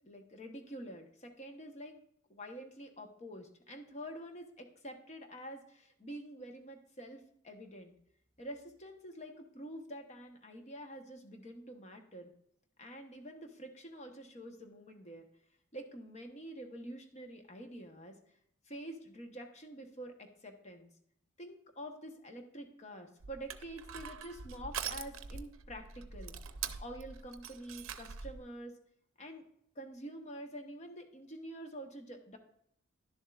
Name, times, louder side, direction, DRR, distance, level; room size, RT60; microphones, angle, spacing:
voice 1, 0.0-2.0 2.3-7.9 8.4-12.3 12.8-15.3 15.7-18.2 18.6-20.9 21.4-26.3 26.8-28.8 29.2-29.4 29.7-32.4, right 1 dB, 35° left, 5 dB, 1.0 m, -47 dB
Crushing, 23.2-28.4, right 7 dB, 75° right, 0.6 m, -44 dB
11.0 x 7.1 x 2.4 m, 0.71 s
head